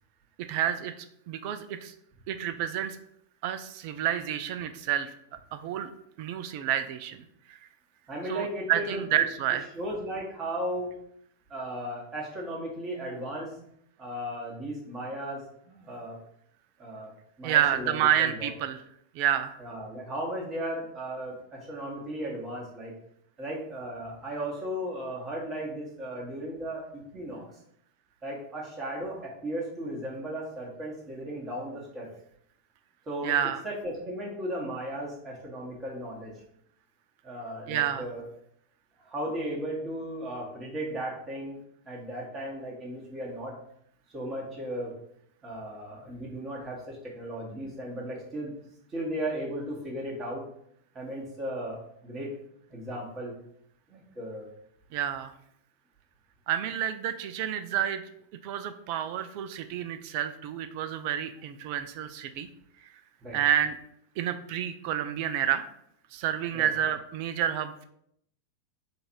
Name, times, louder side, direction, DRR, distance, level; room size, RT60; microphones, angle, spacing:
voice 1, 0.5-1.9 2.3-3.0 3.4-5.1 5.5-5.9 6.2-7.2 7.5-7.6 8.3-9.7 17.4-18.8 19.1-19.5 33.2-33.6 37.7-38.1 54.9-55.3 56.5-58.0 58.4-62.5 63.3-63.8 64.2-65.7 66.1-67.8, right 10 dB, 45° right, 10 dB, 0.3 m, -29 dB
voice 2, 8.1-9.0 9.8-10.9 11.5-13.5 14.0-16.2 16.8-17.1 17.4-18.5 19.6-22.9 23.4-27.4 28.2-32.1 33.1-33.3 33.6-36.3 37.2-38.2 39.0-41.6 41.8-43.5 44.1-44.9 45.4-48.6 48.9-50.4 50.9-52.3 52.7-53.3 53.9-54.5 63.2-63.4 66.5-66.7, right 1 dB, 25° right, -3 dB, 1.3 m, -36 dB
3.8 x 2.5 x 4.4 m, 0.72 s
figure-of-eight pair, 90°, 0 cm